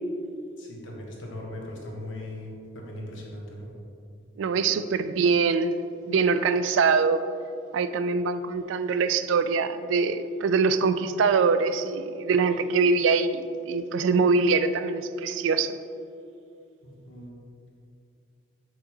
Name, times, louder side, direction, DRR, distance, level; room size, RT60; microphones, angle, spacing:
voice 1, 0.6-3.7 16.8-17.4, left 1 dB, 70° left, 1.2 m, -39 dB
voice 2, 4.4-5.7 6.1-7.2 7.7-15.8, right 4 dB, 70° right, 0.3 m, -23 dB
6.5 x 6.1 x 2.9 m
head